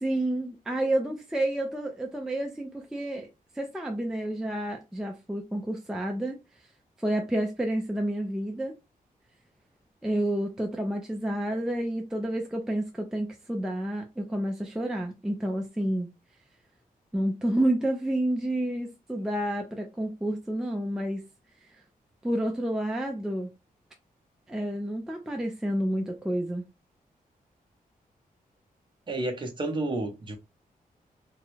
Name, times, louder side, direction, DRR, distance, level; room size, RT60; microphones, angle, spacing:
voice 1, 0.0-3.3 3.6-6.4 7.0-8.7 10.0-16.1 17.1-21.2 22.2-23.5 24.5-26.6, right 1 dB, 5° right, 0.3 m, -29 dB
voice 2, 29.1-30.3, right 2 dB, 30° right, 0.7 m, -30 dB
3.4 x 2.0 x 3.1 m
wide cardioid pair, 180°, 15 cm